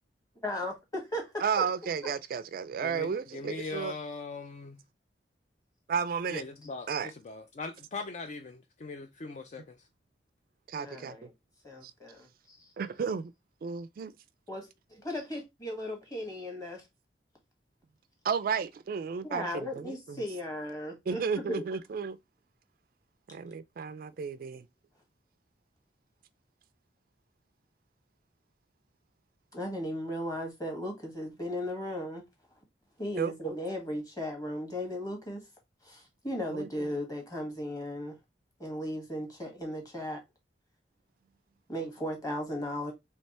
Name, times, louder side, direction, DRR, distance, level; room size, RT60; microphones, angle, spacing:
voice 1, 0.4-1.6 10.8-11.3 11.6-12.7 14.5-16.8 19.2-21.6 24.5-24.6 29.5-32.2 33.0-35.4 35.8-38.2 38.6-40.2 41.7-42.9, left 1 dB, 20° left, 1.5 m, -36 dB
voice 2, 1.4-3.9 5.9-6.4 6.9-7.1 10.7-11.2 12.8-13.3 13.6-14.1 18.2-20.2 21.1-22.2 23.3-24.6 33.2-33.3 36.5-36.7, right 6 dB, 55° right, 0.3 m, -33 dB
voice 3, 2.8-4.8 6.3-9.9, left 4 dB, 40° left, 0.4 m, -40 dB
3.3 x 3.2 x 4.1 m
head